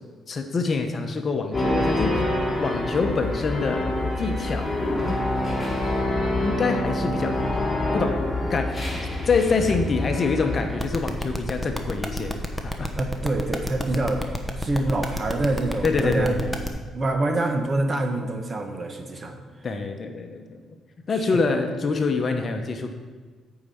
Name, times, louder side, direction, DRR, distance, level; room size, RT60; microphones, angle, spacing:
voice 1, 0.3-2.2 2.6-4.8 6.4-7.5 7.9-8.2 8.5-8.8 9.3-12.4 12.6-12.9 15.8-16.5 19.6-20.6 21.1-22.9, left 4 dB, 45° left, 5 dB, 0.9 m, -25 dB
sound 1, 1.5-10.8, left 1 dB, 15° left, 2.8 m, -26 dB
sound 2, 10.8-16.7, equal, ahead, 1.0 m, -29 dB
voice 2, 12.9-14.2 14.6-16.4 16.9-19.4 21.1-21.5, right 2 dB, 35° right, 4 dB, 1.1 m, -26 dB
8.6 x 4.9 x 7.0 m, 1.4 s
cardioid pair, 90°, 0 cm